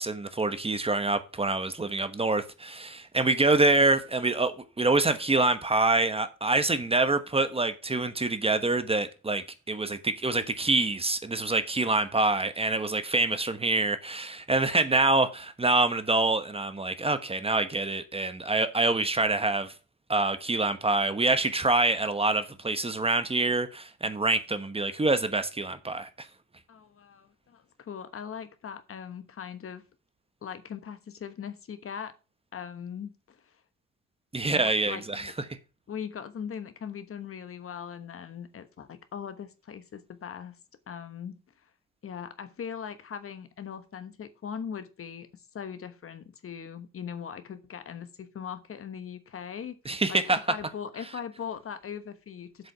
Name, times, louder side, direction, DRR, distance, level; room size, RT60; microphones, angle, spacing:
voice 1, 0.0-19.7 20.1-26.1 34.3-35.3 49.9-50.4, right 2 dB, 20° right, 1.1 m, -26 dB
voice 2, 26.7-29.8 30.4-32.1 32.5-33.5 34.5-35.3 35.9-40.6 40.9-41.4 42.0-52.7, left 7 dB, 45° left, 1.2 m, -40 dB
7.8 x 5.1 x 7.2 m
cardioid pair, 90°, 30 cm